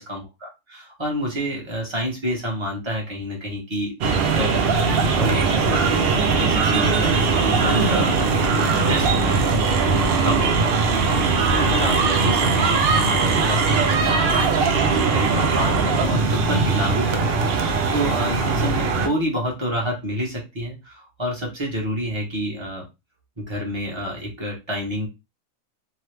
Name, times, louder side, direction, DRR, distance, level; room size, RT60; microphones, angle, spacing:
voice 1, 0.0-3.9 4.2-8.1 8.5-9.5 9.8-10.7 11.5-22.8 23.4-25.1, equal, 20° right, -2 dB, 1.1 m, -28 dB
sound 1, 4.0-19.1, right 4 dB, 65° right, 0.6 m, -20 dB
3.0 x 2.2 x 3.2 m, 0.24 s
omnidirectional pair, 1.5 m